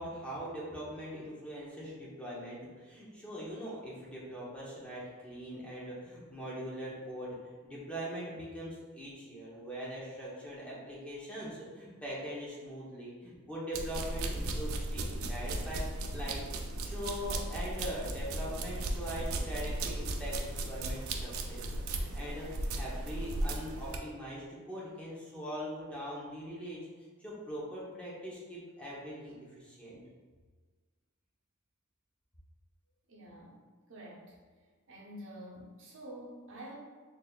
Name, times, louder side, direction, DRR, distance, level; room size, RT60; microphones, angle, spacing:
voice 1, 0.0-7.4 7.6-15.8 16.1-26.8 27.2-30.0, equal, 5° left, -7 dB, 0.8 m, -42 dB
sound 1, 13.7-24.0, right 2 dB, 85° right, 0.4 m, -36 dB
voice 2, 33.1-33.6 33.9-34.3 34.9-36.7, right 1 dB, 65° right, -4 dB, 0.8 m, -48 dB
4.0 x 3.3 x 2.3 m, 1.5 s
head